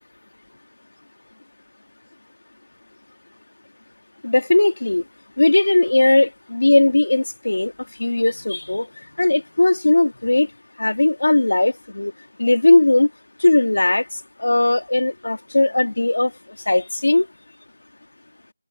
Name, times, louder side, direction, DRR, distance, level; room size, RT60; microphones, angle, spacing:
voice 1, 4.2-5.0 5.4-7.7 8.0-8.9 9.2-10.5 10.8-12.1 12.4-13.1 13.4-16.3 16.6-17.3, left 2 dB, 85° left, 1.7 m, -18 dB
figure-of-eight pair, 175°, 0 cm